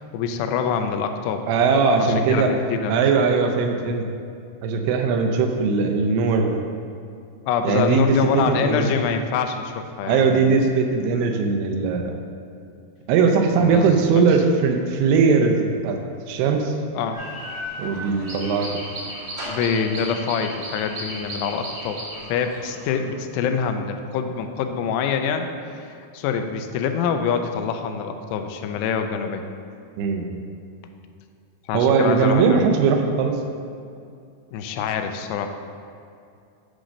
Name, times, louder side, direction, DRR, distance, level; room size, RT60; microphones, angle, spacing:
voice 1, 0.0-1.4 2.3-3.0 7.5-10.3 13.6-13.8 14.2-14.3 16.9-17.2 19.5-22.0 22.3-25.5 25.7-29.4 31.7-32.7 34.5-35.5, left 6 dB, 85° left, 6 dB, 2.7 m, -25 dB
voice 2, 1.5-2.5 2.9-4.1 4.6-6.6 7.6-8.9 10.1-12.2 13.1-16.0 16.3-16.7 17.8-18.8 30.0-30.3 31.7-33.4, right 5 dB, 80° right, 4 dB, 2.6 m, -20 dB
sound 1, 17.1-22.9, equal, 45° right, 1.5 m, -34 dB
9.6 x 3.8 x 6.3 m, 2.5 s
omnidirectional pair, 4.9 m